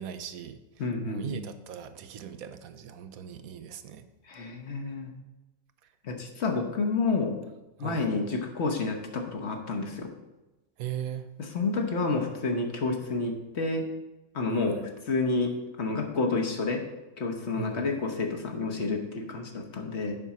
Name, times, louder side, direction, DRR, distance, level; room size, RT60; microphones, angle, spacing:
voice 1, 0.0-0.6 1.1-4.1 7.8-8.1 10.8-11.3 14.5-14.8 17.6-18.0, right 9 dB, 75° right, 10 dB, 1.1 m, -39 dB
voice 2, 0.8-1.4 4.3-5.1 6.0-7.3 7.8-10.1 11.5-13.8 14.3-14.8 15.1-16.8 17.2-20.2, left 3 dB, 50° left, 2 dB, 1.2 m, -29 dB
7.4 x 5.3 x 5.9 m, 1.0 s
omnidirectional pair, 1.5 m